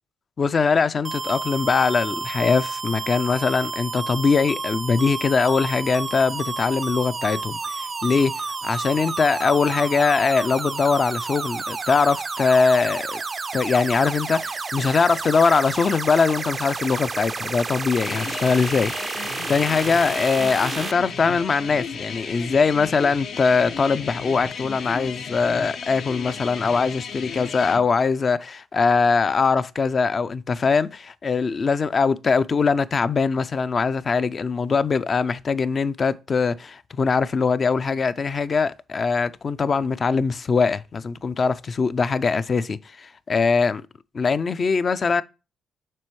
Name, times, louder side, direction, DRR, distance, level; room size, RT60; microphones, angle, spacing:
voice 1, 0.4-8.3 8.6-13.2 13.5-43.8 44.1-45.2, left 5 dB, 40° left, 0.4 m, -22 dB
sound 1, 1.0-20.9, right 4 dB, 35° right, 0.4 m, -31 dB
sound 2, 18.0-27.8, left 6 dB, 65° left, 0.8 m, -34 dB
7.5 x 5.2 x 3.1 m
cardioid pair, 90°, 0 cm